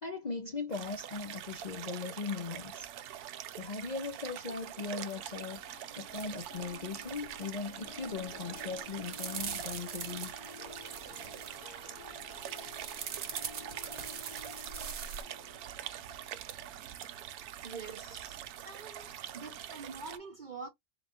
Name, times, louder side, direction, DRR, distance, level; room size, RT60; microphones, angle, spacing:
voice 1, 0.0-2.9 3.5-10.3 11.2-11.4, left 4 dB, 40° left, 0.6 m, -39 dB
sound 1, 0.7-20.2, right 11 dB, 90° right, 1.1 m, -44 dB
Harp, 5.2-17.9 18.3-18.7 19.2-19.3, left 6 dB, 85° left, 1.4 m, -54 dB
sound 2, 6.1-6.5 6.7-7.5 7.8-8.2 8.6-11.8 12.2-15.2, right 7 dB, 65° right, 1.1 m, -42 dB
voice 2, 17.6-18.4 18.6-20.7, right 4 dB, 40° right, 0.8 m, -46 dB
4.1 x 2.6 x 3.6 m
omnidirectional pair, 1.5 m